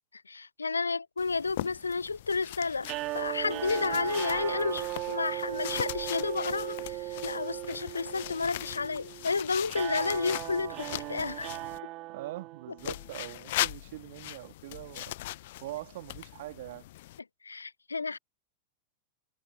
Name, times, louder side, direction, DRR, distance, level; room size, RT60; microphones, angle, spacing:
voice 1, 0.1-11.5 12.9-13.0 17.4-18.2, left 4 dB, 75° left, 0.3 m, -31 dB
sound 1, 1.2-11.8 12.8-17.2, left 16 dB, 55° left, 1.1 m, -40 dB
sound 2, 2.8-13.0, right 19 dB, 40° right, 2.8 m, -37 dB
voice 2, 12.1-15.2 15.6-16.9, right 16 dB, 55° right, 3.2 m, -42 dB
figure-of-eight pair, 90°, 0 cm